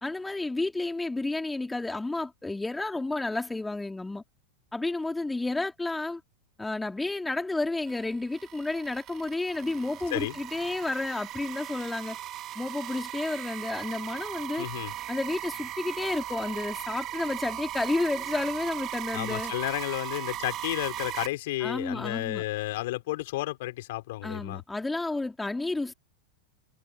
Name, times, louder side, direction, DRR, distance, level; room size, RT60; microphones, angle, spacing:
voice 1, 0.0-4.2 4.7-6.2 6.6-12.2 12.6-14.7 15.1-19.5 21.6-22.4 24.2-25.9, left 2 dB, 5° left, 3.4 m, -31 dB
sound 1, 7.9-21.3, right 13 dB, 35° right, 3.1 m, -38 dB
voice 2, 14.6-14.9 19.1-24.6, left 18 dB, 50° left, 6.5 m, -32 dB
figure-of-eight pair, 90°, 0 cm